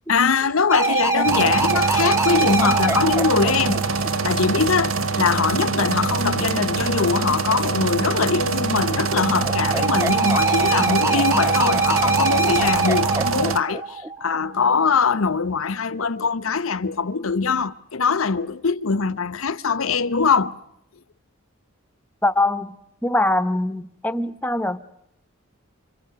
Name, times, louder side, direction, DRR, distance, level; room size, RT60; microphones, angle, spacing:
voice 1, 0.1-3.9 4.2-13.8 14.2-20.5, left 5 dB, 80° left, 0.9 m, -22 dB
sound 1, 0.7-4.7 8.3-14.7, right 3 dB, 15° right, 0.9 m, -24 dB
sound 2, 1.2-13.6, right 4 dB, 75° right, 1.0 m, -24 dB
voice 2, 22.2-22.8 23.0-24.8, left 2 dB, 10° left, 0.9 m, -22 dB
27.5 x 25.5 x 6.9 m
head